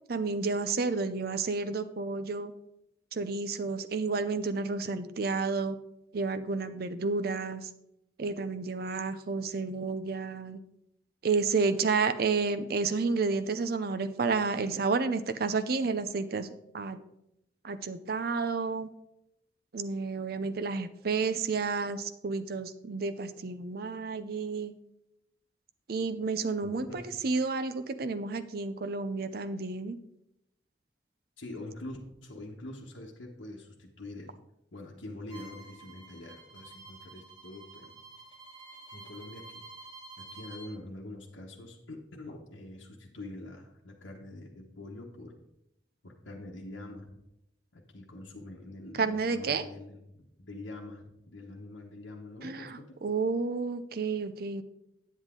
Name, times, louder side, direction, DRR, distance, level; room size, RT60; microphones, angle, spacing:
voice 1, 0.1-2.5 3.1-5.8 6.1-7.7 8.2-10.6 11.2-16.5 16.7-17.0 17.6-18.9 19.7-24.7 25.9-30.0 49.0-49.6 52.4-54.6, right 4 dB, 55° right, 10 dB, 0.5 m, -31 dB
voice 2, 26.6-27.1 31.4-34.3 34.7-37.9 38.9-39.6 40.2-45.4 46.0-47.1 47.7-52.9, left 2 dB, 80° left, -2 dB, 1.1 m, -45 dB
Bowed string instrument, 35.3-40.7, right 3 dB, 25° right, 1.5 m, -49 dB
9.2 x 8.1 x 3.7 m, 0.82 s
head